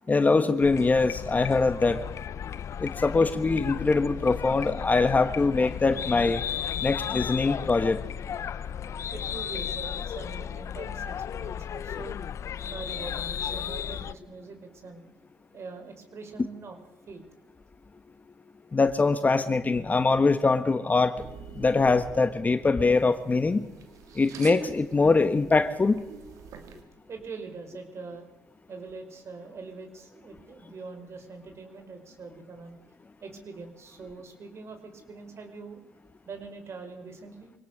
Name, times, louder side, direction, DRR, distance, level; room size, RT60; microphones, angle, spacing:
voice 1, 0.1-2.0 2.8-6.4 6.8-8.0 18.7-21.1 21.5-23.7 24.1-26.0, left 3 dB, 25° left, 11 dB, 1.5 m, -23 dB
sound 1, 0.6-14.1, left 8 dB, 55° left, 0.7 m, -34 dB
voice 2, 9.1-12.2 12.7-15.1 15.5-16.8 17.1-17.2 27.1-28.3 28.7-32.8 33.2-35.8 36.3-37.5, right 4 dB, 50° right, 6 dB, 5.0 m, -43 dB
sound 2, 21.1-26.8, right 6 dB, 70° right, 2.6 m, -44 dB
25.0 x 18.0 x 6.7 m, 1.1 s
supercardioid pair, 70°, 6 cm